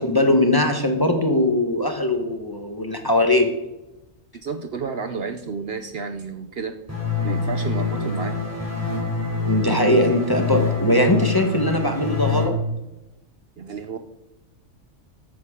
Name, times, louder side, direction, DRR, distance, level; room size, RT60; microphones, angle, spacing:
voice 1, 0.0-3.5 9.4-12.5, left 1 dB, 20° left, 4 dB, 1.1 m, -20 dB
voice 2, 4.3-6.8 7.2-8.4 13.6-14.0, right 5 dB, 55° right, 8 dB, 0.9 m, -31 dB
sound 1, 6.9-12.5, left 4 dB, 10° right, 3.1 m, -25 dB
14.0 x 8.5 x 3.7 m, 0.95 s
omnidirectional pair, 1.3 m